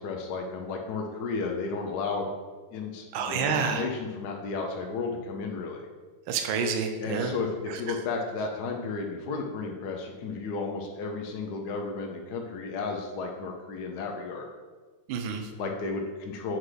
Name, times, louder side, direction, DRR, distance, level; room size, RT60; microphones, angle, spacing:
voice 1, 0.0-2.3 2.7-5.9 7.0-14.5 15.6-16.6, left 4 dB, 65° left, 1 dB, 1.1 m, -33 dB
voice 2, 3.1-3.8 6.3-7.3 15.1-15.4, right 6 dB, 70° right, 5 dB, 1.4 m, -28 dB
7.5 x 5.7 x 3.2 m, 1.4 s
omnidirectional pair, 2.3 m